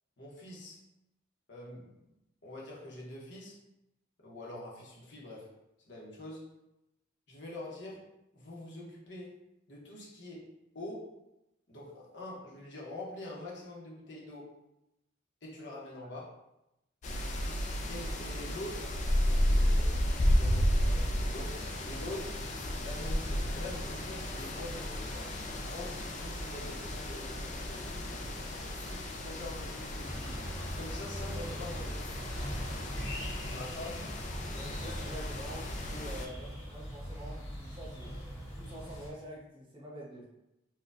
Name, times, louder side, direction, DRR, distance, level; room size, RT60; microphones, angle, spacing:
voice 1, 0.2-0.8 1.5-1.9 2.4-3.6 4.2-5.5 5.9-6.5 7.3-8.0 8.3-9.4 9.7-11.1 11.7-14.5 15.4-16.3 17.9-21.6 21.8-22.4 22.8-25.3 25.6-27.9 28.9-30.4 30.8-32.2 33.5-34.1 34.5-34.7, left 1 dB, 60° left, -4 dB, 0.9 m, -45 dB
sound 1, 17.0-36.3, equal, 35° left, 0.4 m, -33 dB
voice 2, 28.0-28.3 34.6-38.2 38.5-40.3, equal, 25° right, -5 dB, 0.7 m, -46 dB
sound 2, 30.0-39.1, equal, 85° left, 1.2 m, -41 dB
4.3 x 2.2 x 2.5 m, 0.90 s
head